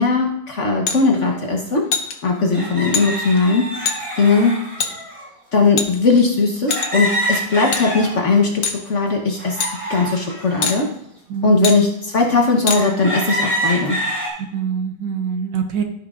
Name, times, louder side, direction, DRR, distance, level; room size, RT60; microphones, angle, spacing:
voice 1, 0.0-1.9 2.2-3.7 4.2-4.5 5.5-10.9 11.4-14.0, left 4 dB, 50° left, 1 dB, 1.1 m, -18 dB
sound 1, 0.9-1.0 1.9-2.1 2.9-3.1 3.9-4.0 4.8-4.9 5.8-6.2 6.7-7.1 7.7-7.8 8.6-8.8 9.6-9.7 10.6-10.8 11.6-11.8 12.7-12.8, left 6 dB, 70° left, 1.5 m, -22 dB
sound 2, 1.4-1.5 2.5-5.3 6.7-8.4 8.9-10.8 11.5-11.6 12.2-12.3 12.7-14.3, equal, 25° right, 3.4 m, -26 dB
voice 2, 11.3-11.8 14.5-15.8, right 6 dB, 75° right, 5 dB, 1.7 m, -24 dB
14.0 x 5.9 x 2.4 m, 0.74 s
omnidirectional pair, 2.0 m